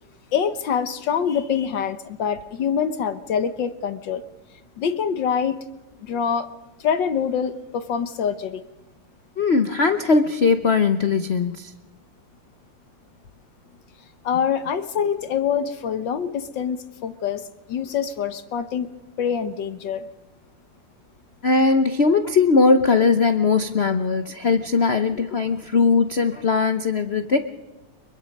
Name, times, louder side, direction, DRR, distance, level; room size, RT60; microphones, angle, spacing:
voice 1, 0.3-4.2 4.8-5.6 6.0-6.5 6.8-8.6 14.2-18.9 19.2-20.1, left 7 dB, 60° left, 11 dB, 1.6 m, -25 dB
voice 2, 9.4-11.7 21.4-27.4, left 4 dB, 85° left, 9 dB, 0.5 m, -19 dB
24.5 x 22.5 x 5.3 m, 1.1 s
omnidirectional pair, 2.4 m